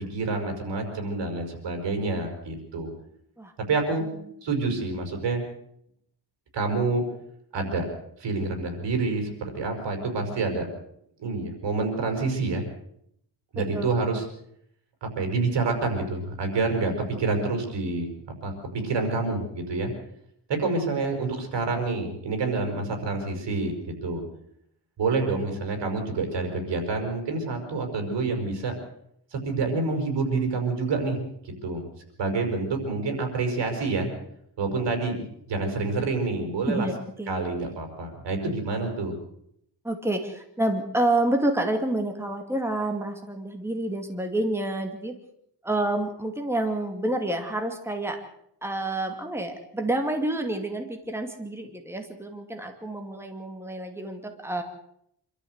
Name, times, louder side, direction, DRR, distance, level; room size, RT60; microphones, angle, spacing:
voice 1, 0.1-2.9 3.6-4.0 4.4-5.4 6.5-7.0 7.5-7.9 8.2-10.7 11.2-12.6 13.5-14.3 15.0-18.1 18.4-19.9 20.5-23.7 24.0-24.2 25.0-28.7 29.3-31.2 31.6-31.8 32.2-34.1 34.6-36.9 37.3-39.1, right 3 dB, 85° right, 5 dB, 5.8 m, -27 dB
voice 2, 36.7-37.4 39.8-45.1 45.6-48.2 48.6-54.6, right 1 dB, 5° right, 4 dB, 2.4 m, -28 dB
26.0 x 13.5 x 8.1 m, 0.73 s
wide cardioid pair, 135°, 41 cm